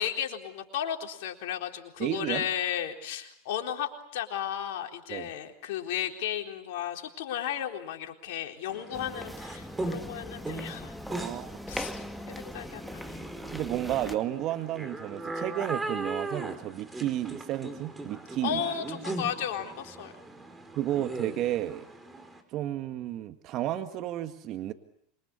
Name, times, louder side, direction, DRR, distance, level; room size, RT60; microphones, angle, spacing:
voice 1, 0.0-11.3 11.7-13.3 18.4-20.1, left 10 dB, 70° left, 3 dB, 4.0 m, -34 dB
voice 2, 2.0-2.4 5.1-5.3 11.1-11.6 13.5-18.6 20.7-21.9 22.5-24.7, right 13 dB, 50° right, 8 dB, 1.8 m, -32 dB
sound 1, 8.7-22.4, right 2 dB, 15° right, 5.1 m, -39 dB
sound 2, 8.9-14.1, left 1 dB, ahead, 2.0 m, -41 dB
27.0 x 23.5 x 8.5 m, 0.72 s
hypercardioid pair, 95°, 0 cm